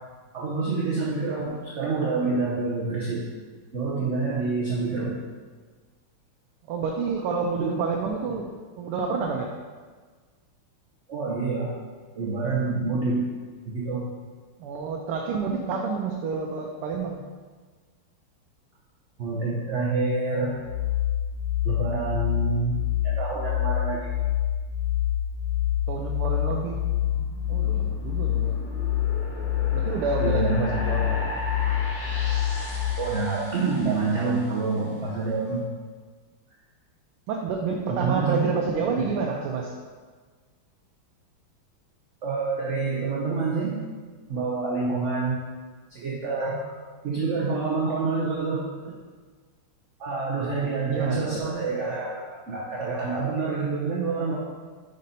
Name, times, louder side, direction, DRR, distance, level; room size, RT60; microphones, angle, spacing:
voice 1, 0.3-3.2 3.7-5.1 7.6-7.8 11.1-11.7 12.1-13.3 13.7-14.0 19.2-20.5 21.6-22.7 23.0-24.1 30.2-30.7 33.0-35.6 37.9-38.4 42.2-43.8 44.3-45.4 45.9-46.7 47.0-48.7 50.0-54.4, right 4 dB, 65° right, -5 dB, 0.7 m, -27 dB
voice 2, 6.7-9.5 14.6-17.2 25.9-26.9 27.5-28.6 29.7-31.4 37.3-39.7 48.8-49.0 50.9-51.4, right 5 dB, 85° right, 1 dB, 1.5 m, -29 dB
sound 1, 20.6-32.9, left 11 dB, 75° left, 0.8 m, -26 dB
sound 2, 25.6-35.0, left 1 dB, 55° left, 1.7 m, -38 dB
5.2 x 5.2 x 4.2 m, 1.5 s
omnidirectional pair, 2.4 m